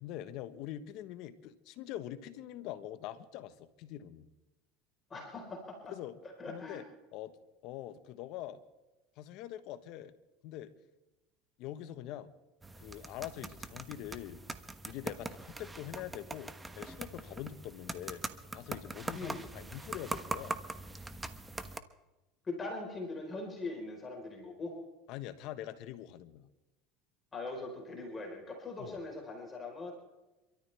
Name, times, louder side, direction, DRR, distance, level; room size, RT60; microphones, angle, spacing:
voice 1, 0.0-4.3 5.8-6.1 6.5-6.8 7.1-7.4 7.6-8.6 9.2-10.1 10.4-10.7 11.6-12.3 12.8-14.4 14.8-18.2 18.5-20.6 25.1-26.5 28.8-29.0, left 12 dB, 65° left, 11 dB, 1.4 m, -44 dB
voice 2, 5.1-5.9 6.2-6.8 19.1-19.4 22.4-24.8 27.3-29.9, left 3 dB, 25° left, 1 dB, 4.7 m, -41 dB
sound 1, 12.6-21.8, right 2 dB, 15° right, 1.2 m, -42 dB
28.0 x 13.5 x 3.6 m, 1.1 s
supercardioid pair, 100°, 0 cm